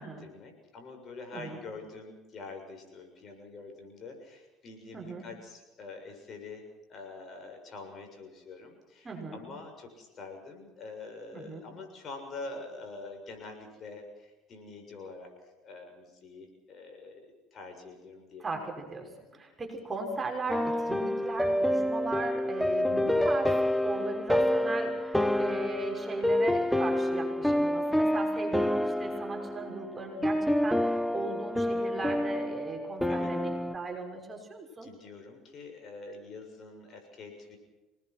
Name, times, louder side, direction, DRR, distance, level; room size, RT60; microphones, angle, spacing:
voice 1, 0.0-15.3 15.6-18.5 19.3-19.4 29.6-29.7 33.1-33.3 34.8-37.6, left 3 dB, 45° left, 5 dB, 7.0 m, -45 dB
voice 2, 4.9-5.3 9.0-9.5 11.3-11.7 18.4-23.6 23.8-34.9, right 3 dB, 25° right, 1 dB, 6.1 m, -38 dB
sound 1, 20.5-33.7, left 1 dB, ahead, 1.0 m, -28 dB
26.5 x 20.0 x 6.1 m, 1.1 s
supercardioid pair, 85°, 0 cm